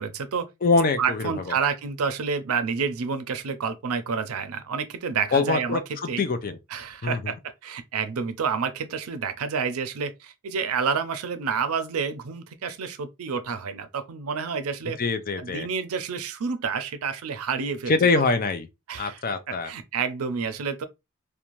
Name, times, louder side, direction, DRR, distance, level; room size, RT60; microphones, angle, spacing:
voice 1, 0.0-0.5 1.0-5.8 6.1-6.2 6.7-15.0 15.4-18.2 18.9-19.2 19.5-20.8, right 6 dB, 85° right, 0.5 m, -29 dB
voice 2, 0.6-1.6 5.3-6.6 7.0-7.3 15.0-15.7 17.9-18.7 19.0-19.7, left 4 dB, 40° left, 0.4 m, -24 dB
2.5 x 2.2 x 2.9 m
head